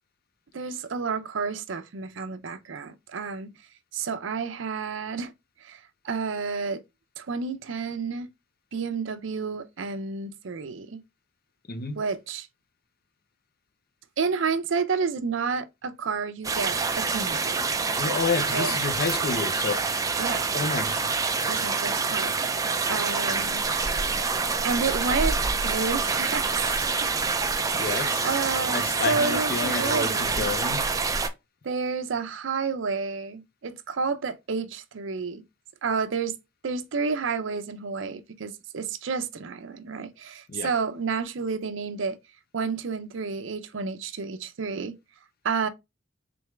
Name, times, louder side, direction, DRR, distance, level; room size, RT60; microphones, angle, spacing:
voice 1, 0.5-3.5 3.9-5.3 5.6-6.8 7.2-8.3 8.7-11.0 11.9-12.5 14.2-17.7 18.5-18.7 20.2-20.5 21.5-22.4 22.9-23.6 24.6-25.4 25.6-27.1 27.8-30.5 31.6-35.4 35.8-36.4 36.6-42.2 42.5-45.0 45.4-45.7, right 5 dB, 70° right, 0.6 m, -30 dB
voice 2, 11.7-12.0 18.0-19.9 20.5-21.1 27.7-28.4 28.7-30.8 40.5-40.7, left 4 dB, 50° left, 0.6 m, -30 dB
sound 1, 16.4-31.3, right 4 dB, 15° right, 0.4 m, -26 dB
3.8 x 3.5 x 3.2 m
head